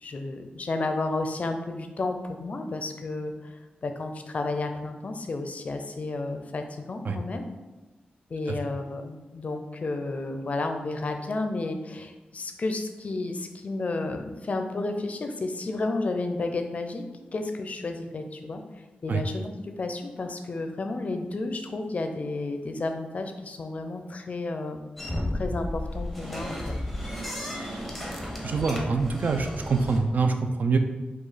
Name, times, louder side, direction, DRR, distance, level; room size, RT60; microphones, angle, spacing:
voice 1, 0.0-3.6 3.8-7.4 8.3-17.0 17.3-18.6 19.0-24.8 25.3-26.8, left 2 dB, 45° left, 6 dB, 0.4 m, -32 dB
sound 1, 25.0-30.0, left 1 dB, ahead, 0.7 m, -33 dB
voice 2, 28.4-30.8, right 4 dB, 55° right, 6 dB, 0.4 m, -25 dB
4.9 x 2.3 x 4.0 m, 1.1 s
wide cardioid pair, 115°, 3 cm